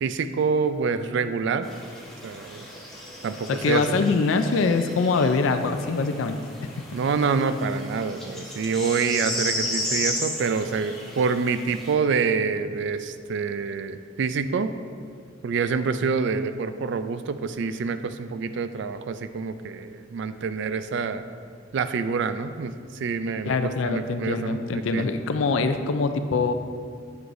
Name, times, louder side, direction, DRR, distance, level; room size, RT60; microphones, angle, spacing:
voice 1, 0.0-1.7 2.2-2.7 3.2-4.0 6.9-14.7 15.4-21.2 21.7-25.1, right 5 dB, 65° right, 10 dB, 0.3 m, -26 dB
sound 1, 1.6-11.9, left 1 dB, ahead, 1.3 m, -34 dB
voice 2, 3.5-6.8 23.4-26.5, left 4 dB, 75° left, 8 dB, 0.4 m, -24 dB
8.1 x 7.8 x 2.6 m, 2.1 s
head